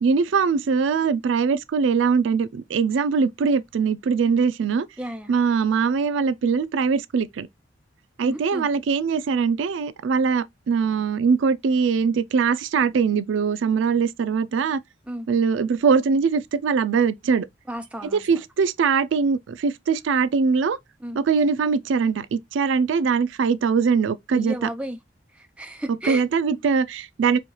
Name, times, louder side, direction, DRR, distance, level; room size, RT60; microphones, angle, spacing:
voice 1, 0.0-4.9 5.3-7.5 8.2-14.8 15.3-17.5 18.1-20.8 21.2-24.7 26.1-27.4, right 5 dB, 85° right, 0.4 m, -22 dB
voice 2, 5.0-5.3 8.2-8.7 15.1-15.3 17.7-18.2 21.0-21.2 24.3-25.0 25.3-26.2, right 1 dB, 5° right, 0.5 m, -33 dB
4.3 x 2.3 x 3.0 m
head